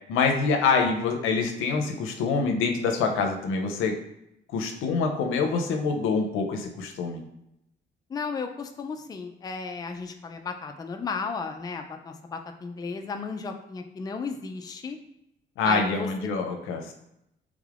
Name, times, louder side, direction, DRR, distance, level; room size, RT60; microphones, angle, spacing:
voice 1, 0.1-3.9 4.5-7.2 15.6-16.9, left 4 dB, 90° left, 3 dB, 0.5 m, -25 dB
voice 2, 8.1-15.0 15.6-16.1, left 4 dB, 20° left, 5 dB, 0.3 m, -34 dB
3.6 x 3.2 x 2.4 m, 0.83 s
cardioid pair, 90°, 20 cm